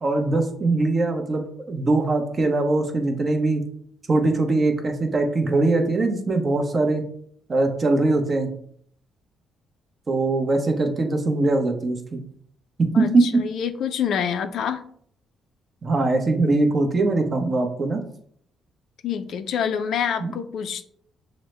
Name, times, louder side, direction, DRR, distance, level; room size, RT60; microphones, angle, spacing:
voice 1, 0.0-3.6 4.1-7.0 7.5-8.5 10.1-12.2 12.8-13.4 15.8-18.0 20.2-20.3, right 2 dB, 40° right, 4 dB, 0.8 m, -21 dB
voice 2, 12.9-14.8 19.0-20.8, left 8 dB, 70° left, 9 dB, 0.4 m, -27 dB
6.2 x 2.1 x 3.2 m, 0.62 s
cardioid pair, 90°, 0 cm